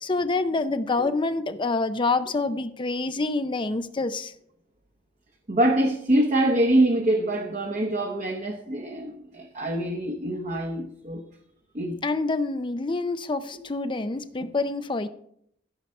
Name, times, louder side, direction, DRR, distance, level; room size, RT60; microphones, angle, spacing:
voice 1, 0.0-4.3 12.0-15.1, left 3 dB, 25° left, 0.6 m, -27 dB
voice 2, 5.5-11.2 11.7-12.0, right 1 dB, 45° right, 1.1 m, -24 dB
14.0 x 5.7 x 6.5 m
head